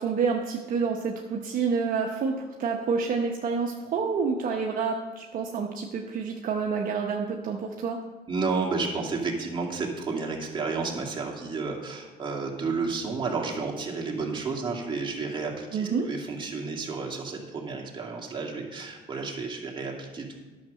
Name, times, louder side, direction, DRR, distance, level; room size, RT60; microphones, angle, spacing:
voice 1, 0.0-8.0 15.7-16.1, right 5 dB, 55° right, 1 dB, 1.0 m, -28 dB
voice 2, 8.3-20.4, right 4 dB, 30° right, -1 dB, 2.3 m, -31 dB
10.5 x 6.6 x 6.3 m, 1.3 s
cardioid pair, 110°, 17 cm